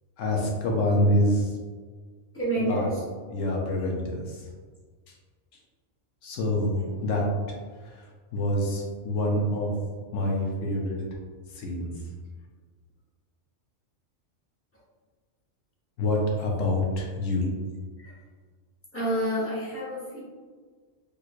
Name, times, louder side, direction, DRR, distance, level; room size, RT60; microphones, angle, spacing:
voice 1, 0.2-1.6 2.7-2.9 3.2-4.5 5.1-5.2 6.2-7.3 7.8-9.7 10.1-11.0 11.5-11.9 16.0-17.5, left 1 dB, 75° left, -1 dB, 1.0 m, -26 dB
voice 2, 2.3-3.0 18.0-18.2 18.9-20.2, right 1 dB, 10° left, -9 dB, 0.9 m, -29 dB
3.2 x 3.1 x 2.4 m, 1.5 s
omnidirectional pair, 1.4 m